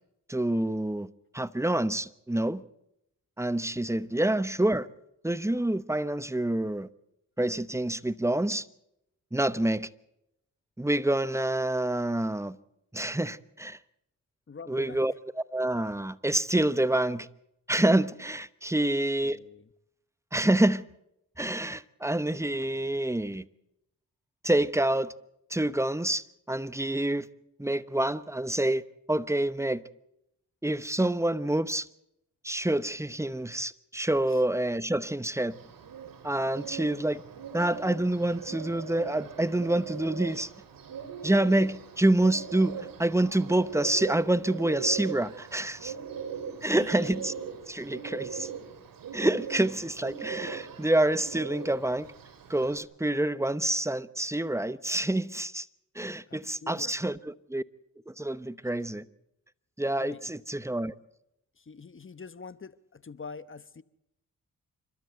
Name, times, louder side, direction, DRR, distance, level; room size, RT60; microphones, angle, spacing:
voice 1, 0.3-1.1 1.3-2.6 3.4-4.9 5.2-6.9 7.4-8.7 9.3-9.9 10.8-12.6 12.9-13.8 14.7-17.3 17.7-19.4 20.3-20.8 21.4-23.4 24.4-25.1 25.5-27.3 27.6-28.8 29.1-29.8 30.6-31.9 32.4-35.6 36.2-37.2 37.5-40.5 41.2-45.9 46.6-47.3 47.7-48.5 49.1-52.1 52.5-55.7 55.9-57.6 58.1-59.0 59.8-60.9, right 1 dB, 10° right, 0.9 m, -27 dB
voice 2, 14.5-15.1 18.8-18.9 19.2-19.7 34.3-34.4 46.6-46.9 56.3-57.0 59.9-60.3 61.6-63.8, left 5 dB, 35° left, 1.0 m, -45 dB
Bird, 35.5-52.8, right 7 dB, 85° right, 2.5 m, -40 dB
28.0 x 12.5 x 8.1 m
supercardioid pair, 45°, 34 cm